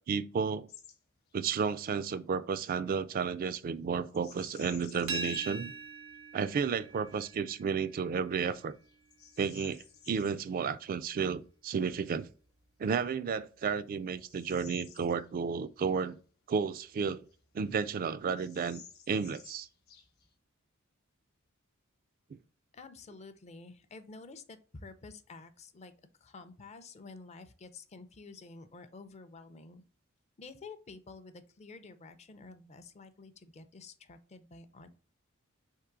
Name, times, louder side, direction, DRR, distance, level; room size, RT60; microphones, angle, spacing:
voice 1, 0.1-0.7 1.3-5.7 6.3-8.8 9.4-12.3 12.8-16.2 16.5-17.3 17.5-18.8 19.1-19.7 22.3-22.4, right 6 dB, 40° right, 0.3 m, -32 dB
Bird vocalization bird call bird song, 0.7-1.0 1.3-1.6 4.1-5.6 6.1-6.2 6.9-7.3 7.8-7.9 8.5-10.4 12.5-12.6 13.2-15.7 16.0-16.1 16.8-17.6 17.9-18.0 18.2-20.4, left 8 dB, 50° left, 0.8 m, -54 dB
sound 1, 5.1-10.8, right 3 dB, 75° right, 0.8 m, -44 dB
voice 2, 22.7-25.9 26.2-29.8 30.4-34.9, left 3 dB, 30° left, 0.5 m, -50 dB
3.7 x 3.0 x 4.5 m
head